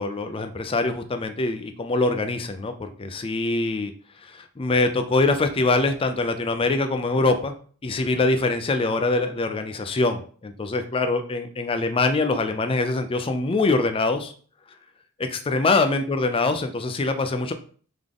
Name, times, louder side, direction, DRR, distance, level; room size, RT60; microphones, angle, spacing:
voice 1, 0.0-3.9 4.2-7.5 7.8-14.3 15.2-17.5, left 3 dB, 25° left, 7 dB, 0.4 m, -24 dB
3.7 x 3.6 x 3.5 m, 0.43 s
head